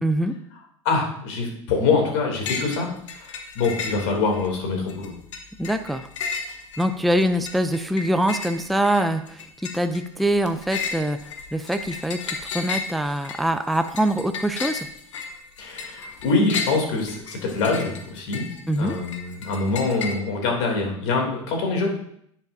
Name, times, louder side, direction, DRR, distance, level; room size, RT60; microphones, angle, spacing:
voice 1, 0.0-0.3 5.6-6.1 6.8-9.5 9.7-11.2 11.5-14.9 18.7-18.9, right 1 dB, ahead, 8 dB, 0.5 m, -24 dB
voice 2, 0.8-5.1 15.6-18.5 18.8-21.9, left 4 dB, 70° left, 1 dB, 2.9 m, -24 dB
sound 1, 2.4-2.8 3.1-4.5 4.9-20.1, left 5 dB, 85° left, 1.2 m, -34 dB
10.5 x 7.4 x 2.7 m, 0.69 s
hypercardioid pair, 95°, 15 cm